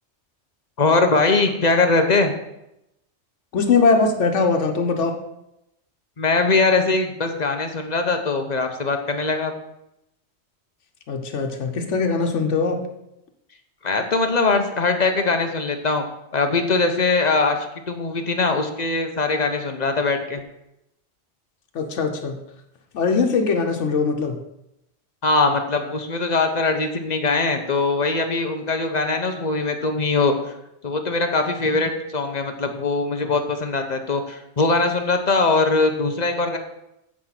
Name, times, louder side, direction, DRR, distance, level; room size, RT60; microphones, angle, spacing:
voice 1, 0.8-2.3 6.2-9.5 13.8-16.0 16.3-20.4 25.2-30.5 30.8-36.6, left 3 dB, 40° left, 6 dB, 0.9 m, -21 dB
voice 2, 3.5-5.1 11.1-12.8 21.7-22.4 22.9-24.4, left 4 dB, 85° left, 4 dB, 1.3 m, -21 dB
8.4 x 5.0 x 5.8 m, 0.85 s
omnidirectional pair, 1.2 m